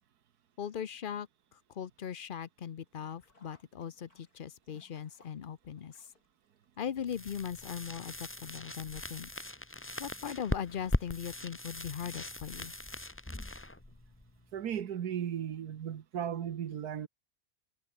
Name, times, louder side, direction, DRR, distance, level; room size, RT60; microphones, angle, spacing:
voice 1, 0.6-6.1 6.8-9.3 10.0-12.7, left 8 dB, 50° left, 0.6 m, -39 dB
Sink (filling or washing), 2.9-7.8 8.1-8.2 9.2-9.3 9.6-9.7, left 2 dB, 75° left, 5.9 m, -66 dB
sound 1, 7.1-14.8, left 1 dB, 10° left, 1.0 m, -40 dB
voice 2, 14.5-17.1, right 9 dB, 80° right, 1.6 m, -36 dB
omnidirectional pair, 1.6 m